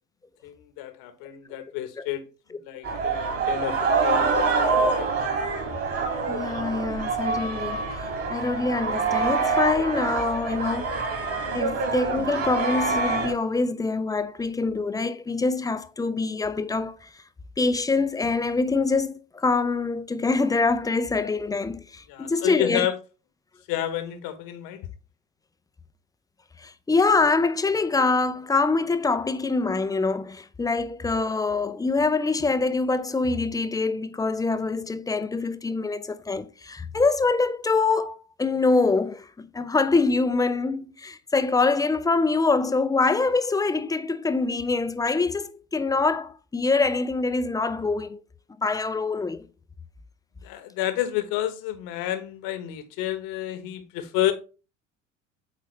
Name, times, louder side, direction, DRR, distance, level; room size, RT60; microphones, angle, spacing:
voice 1, 0.4-2.3 2.6-5.1 5.7-5.9 22.1-23.0 23.7-24.9 50.4-54.3, left 12 dB, 60° left, 1.2 m, -30 dB
sound 1, 2.8-13.3, right 4 dB, 35° right, 2.5 m, -26 dB
voice 2, 6.3-7.8 8.3-10.9 11.5-17.1 17.6-22.9 26.6-48.2 48.6-49.5, left 3 dB, 10° left, 0.5 m, -25 dB
8.2 x 4.0 x 3.2 m
hypercardioid pair, 75°, 39 cm